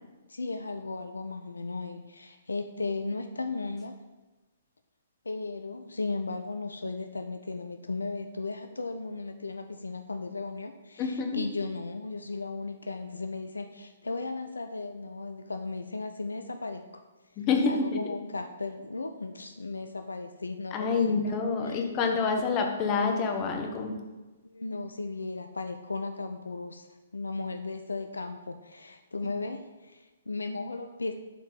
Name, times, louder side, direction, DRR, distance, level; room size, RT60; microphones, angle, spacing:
voice 1, 0.3-4.0 5.3-17.0 17.7-21.4 21.6-21.9 22.3-22.6 24.4-26.9 27.1-31.1, left 3 dB, 75° left, 8 dB, 0.4 m, -36 dB
voice 2, 11.0-11.5 17.4-18.1 20.7-24.1, left 4 dB, 30° left, 3 dB, 1.1 m, -27 dB
7.5 x 4.5 x 5.3 m, 1.2 s
figure-of-eight pair, 125°, 0 cm